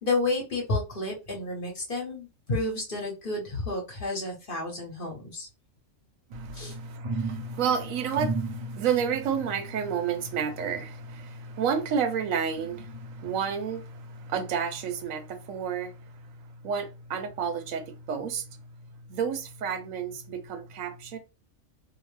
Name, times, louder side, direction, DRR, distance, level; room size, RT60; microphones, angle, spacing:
voice 1, 0.0-5.5 6.5-6.7, left 2 dB, 45° left, 1.1 m, -31 dB
sound 1, 6.3-12.1 12.6-13.7 14.2-14.3, right 2 dB, 40° right, 0.7 m, -38 dB
voice 2, 6.3-16.0 16.6-18.5 19.1-21.2, right 7 dB, 80° right, 1.0 m, -30 dB
2.8 x 2.1 x 3.2 m
omnidirectional pair, 1.4 m